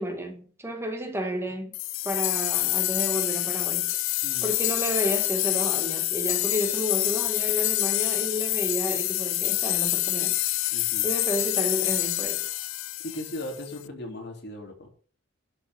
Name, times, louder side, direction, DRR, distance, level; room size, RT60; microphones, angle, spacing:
voice 1, 0.0-1.7 2.0-4.0 4.4-10.7 11.0-12.5, equal, 10° right, 2.1 m, -31 dB
sound 1, 1.7-13.8, left 17 dB, 75° left, 0.6 m, -27 dB
voice 2, 10.7-11.1 13.0-14.9, left 1 dB, 55° left, 3.4 m, -37 dB
11.5 x 5.9 x 6.1 m
head